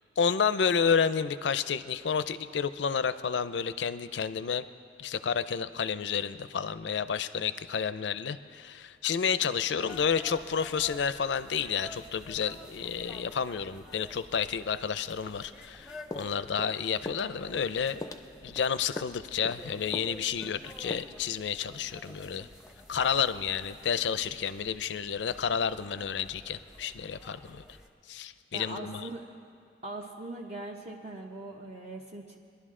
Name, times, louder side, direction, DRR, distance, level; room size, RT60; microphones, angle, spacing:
voice 1, 0.2-4.7 5.0-18.0 18.4-22.5 22.9-27.6 28.1-29.1, left 6 dB, 80° left, 14 dB, 0.5 m, -30 dB
sound 1, 9.9-27.9, left 1 dB, 5° right, 0.8 m, -50 dB
sound 2, 16.1-16.8 17.0-17.3 17.5-17.7 18.0-18.6 19.0-19.2 19.4-19.7 19.9-20.2 20.4-20.6 20.9-21.0, left 2 dB, 20° left, 0.4 m, -40 dB
voice 2, 28.5-29.2 29.8-32.4, right 2 dB, 40° right, -1 dB, 0.8 m, -41 dB
21.5 x 11.0 x 3.7 m, 2.5 s
head